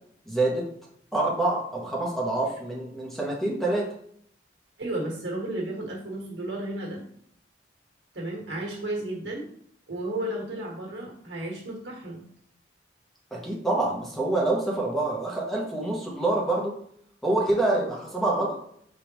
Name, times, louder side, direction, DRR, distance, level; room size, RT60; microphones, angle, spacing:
voice 1, 0.3-0.7 1.1-3.9 13.3-16.7 17.2-18.6, right 2 dB, ahead, -2 dB, 0.8 m, -26 dB
voice 2, 4.8-7.0 8.1-9.5 9.9-12.2, right 1 dB, 80° right, -2 dB, 1.5 m, -33 dB
5.0 x 3.5 x 3.0 m, 0.66 s
head